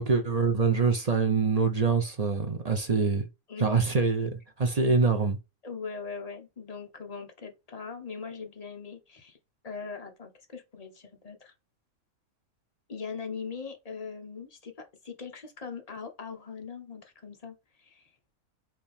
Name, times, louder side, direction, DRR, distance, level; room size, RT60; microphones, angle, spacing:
voice 1, 0.0-3.3 3.6-5.4, right 4 dB, 40° right, 0.6 m, -25 dB
voice 2, 5.6-9.4 9.6-11.5 12.9-18.1, left 5 dB, 30° left, 0.8 m, -41 dB
4.7 x 2.8 x 3.4 m
omnidirectional pair, 1.5 m